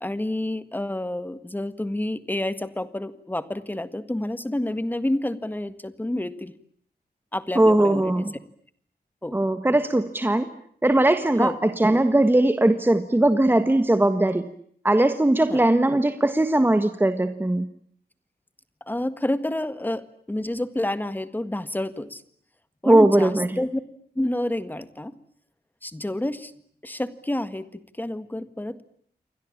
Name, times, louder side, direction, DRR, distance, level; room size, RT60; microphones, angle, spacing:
voice 1, 0.0-6.5 7.3-8.1 9.2-9.4 11.4-11.6 15.5-15.6 18.9-22.2 22.8-23.8 24.2-25.1 25.8-26.5 26.8-28.8, left 1 dB, 10° left, 12 dB, 1.8 m, -29 dB
voice 2, 7.5-8.3 9.3-10.5 10.8-14.5 14.8-17.7 22.8-23.5, right 1 dB, 10° right, 9 dB, 1.4 m, -19 dB
29.0 x 24.0 x 8.6 m, 0.64 s
wide cardioid pair, 160°, 17 cm